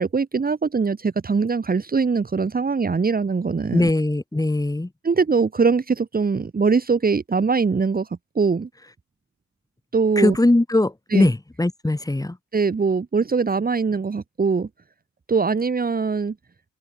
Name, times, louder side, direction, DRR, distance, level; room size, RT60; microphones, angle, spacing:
voice 1, 0.0-3.9 5.0-8.1 8.4-8.7 9.9-10.4 11.1-11.3 12.5-14.7 15.3-16.3, right 5 dB, 30° right, 2.1 m, -22 dB
voice 2, 3.7-4.9 10.2-12.4, left 2 dB, 10° left, 5.1 m, -20 dB
open air
cardioid pair, 80°, 30 cm